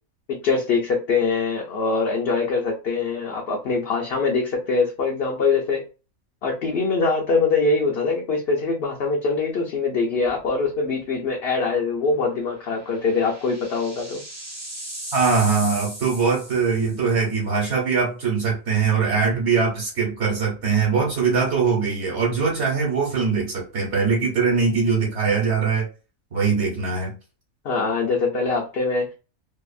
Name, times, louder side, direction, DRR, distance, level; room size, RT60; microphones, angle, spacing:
voice 1, 0.3-5.8 6.4-14.2 27.6-29.1, left 4 dB, 60° left, 0.7 m, -23 dB
sound 1, 10.3-10.6 11.0-11.1 12.5-17.1, right 1 dB, 20° right, 0.5 m, -37 dB
voice 2, 15.1-25.9 26.3-27.1, right 5 dB, 60° right, 1.2 m, -22 dB
2.7 x 2.4 x 2.3 m
omnidirectional pair, 1.4 m